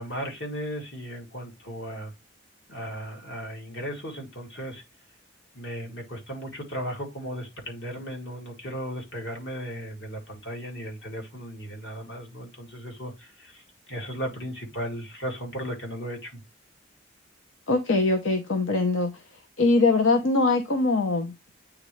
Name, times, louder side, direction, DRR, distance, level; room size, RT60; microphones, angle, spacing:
voice 1, 0.0-2.1 2.7-4.8 5.5-13.6 13.9-16.4, equal, 65° left, 2.3 m, -36 dB
voice 2, 17.7-19.1 19.6-21.5, left 3 dB, 85° left, 0.8 m, -22 dB
8.7 x 3.6 x 3.1 m
head